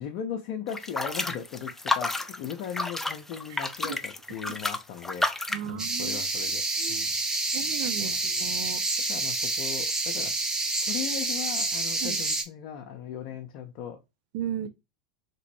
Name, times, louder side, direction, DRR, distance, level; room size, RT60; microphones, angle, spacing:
voice 1, 0.0-7.1 8.0-8.4 9.1-10.3 10.9-14.0, left 8 dB, 50° left, 0.6 m, -38 dB
sound 1, 0.7-5.7, left 2 dB, 10° left, 0.4 m, -31 dB
voice 2, 5.5-6.2 6.8-7.0 7.5-8.8 12.0-12.2 14.3-14.7, right 11 dB, 55° right, 0.4 m, -35 dB
sound 2, 5.8-12.4, right 2 dB, 15° right, 0.8 m, -28 dB
3.0 x 2.9 x 2.9 m
hypercardioid pair, 90°, 4 cm